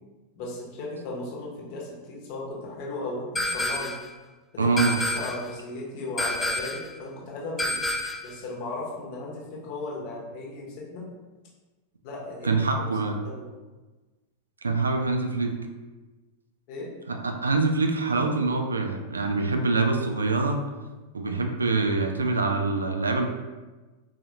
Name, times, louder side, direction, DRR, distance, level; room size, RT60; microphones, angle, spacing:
voice 1, 0.3-4.0 4.5-4.7 4.9-7.8 8.2-11.1 12.0-12.9 13.2-13.5 16.7-16.9, left 2 dB, 45° left, -3 dB, 0.9 m, -36 dB
sound 1, 3.4-4.1 4.8-5.5 6.2-6.9 7.6-8.3, left 1 dB, 10° left, 0.3 m, -28 dB
voice 2, 4.6-5.0 12.4-13.2 14.6-15.5 17.1-20.6 21.1-23.2, right 3 dB, 75° right, 4 dB, 0.3 m, -25 dB
3.9 x 2.3 x 2.9 m, 1.2 s
figure-of-eight pair, 90°, 0 cm